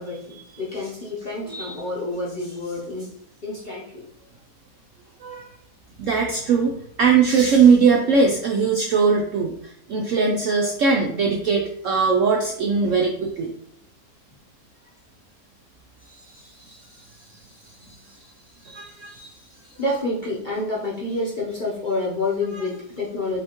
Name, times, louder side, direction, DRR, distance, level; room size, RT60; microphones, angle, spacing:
voice 1, 0.0-3.1 3.4-4.1 19.8-23.4, left 2 dB, 40° left, -6 dB, 0.7 m, -28 dB
voice 2, 6.0-13.5 16.3-16.8 18.6-19.3, right 5 dB, 70° right, 1 dB, 0.7 m, -20 dB
5.4 x 2.9 x 2.9 m, 0.67 s
omnidirectional pair, 1.8 m